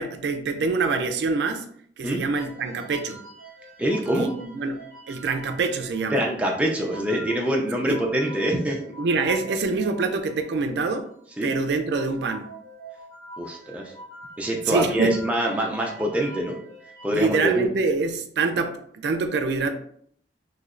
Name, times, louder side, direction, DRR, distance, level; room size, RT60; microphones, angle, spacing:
voice 1, 0.0-1.7 2.0-3.2 4.1-6.2 7.8-8.0 9.0-11.1 11.4-12.5 14.7-15.2 17.1-19.7, right 4 dB, 75° right, 7 dB, 0.3 m, -25 dB
sound 1, 2.3-17.7, right 1 dB, 55° left, 1.0 m, -44 dB
voice 2, 3.8-4.3 6.1-8.8 11.4-11.5 13.4-13.9 14.4-16.6 17.0-17.7, right 1 dB, 5° right, -1 dB, 0.4 m, -25 dB
3.1 x 2.7 x 2.5 m, 0.63 s
head